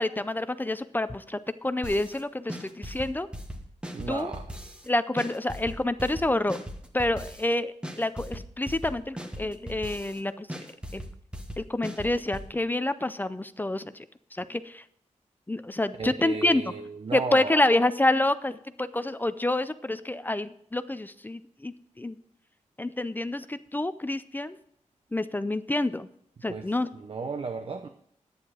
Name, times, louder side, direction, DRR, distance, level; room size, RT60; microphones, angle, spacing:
voice 1, 0.0-3.3 4.1-4.3 4.9-6.6 6.9-10.5 10.9-11.0 11.6-14.1 14.3-14.8 15.5-16.6 17.1-22.2 22.8-24.6 25.1-26.1 26.4-26.9, left 2 dB, 15° left, 13 dB, 0.4 m, -28 dB
sound 1, 1.8-2.2 2.5-4.9 5.2-7.5 7.8-10.2 10.5-12.5, equal, 10° right, 1.2 m, -38 dB
voice 2, 3.9-4.5 16.0-17.6 26.5-27.9, right 4 dB, 45° right, 7 dB, 0.7 m, -34 dB
11.0 x 9.5 x 4.9 m, 0.67 s
wide cardioid pair, 130°, 12 cm